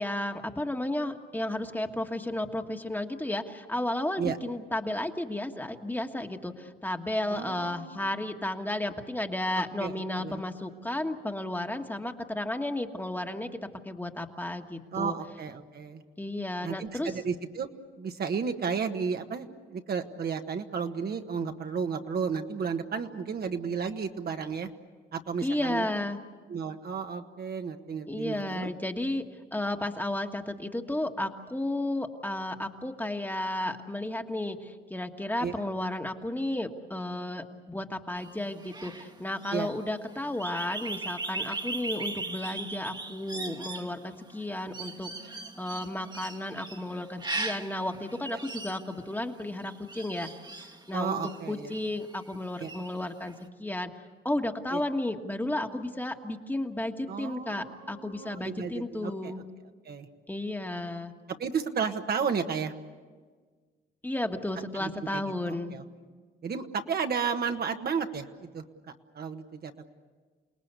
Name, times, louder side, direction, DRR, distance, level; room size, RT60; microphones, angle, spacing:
voice 1, 0.0-13.6 13.8-15.1 16.2-17.1 25.4-26.2 28.1-29.3 29.5-50.3 50.9-51.2 51.5-53.3 53.6-53.9 54.2-59.4 60.3-61.1 64.0-65.8, left 1 dB, 10° left, 5 dB, 1.6 m, -33 dB
voice 2, 7.3-8.0 9.5-10.4 14.9-16.0 16.6-17.7 18.0-24.7 25.1-25.9 26.5-28.7 35.4-35.7 39.5-39.7 48.3-48.4 50.9-51.7 52.6-52.7 54.7-54.8 57.1-59.4 59.8-60.1 61.4-62.7 64.7-65.8 66.4-68.6 69.1-69.7, right 6 dB, 50° right, 6 dB, 1.4 m, -33 dB
sound 1, 38.2-52.3 52.6-53.3, right 3 dB, 20° right, 1.4 m, -39 dB
28.5 x 19.0 x 8.2 m, 1.5 s
cardioid pair, 90°, 20 cm